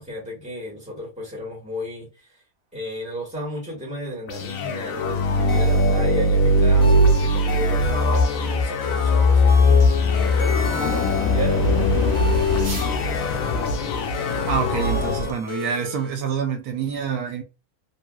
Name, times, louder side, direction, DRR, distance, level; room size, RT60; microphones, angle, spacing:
voice 1, 0.0-2.3 2.7-13.3, equal, 5° right, 1.4 m, -33 dB
sound 1, 4.3-15.3, left 2 dB, 70° left, 1.0 m, -20 dB
sound 2, 4.3-12.9, right 3 dB, 50° right, 1.0 m, -43 dB
sound 3, 5.5-16.1, left 3 dB, 50° left, 0.3 m, -36 dB
voice 2, 14.5-17.4, right 6 dB, 85° right, 1.1 m, -26 dB
3.1 x 2.7 x 2.2 m
omnidirectional pair, 1.6 m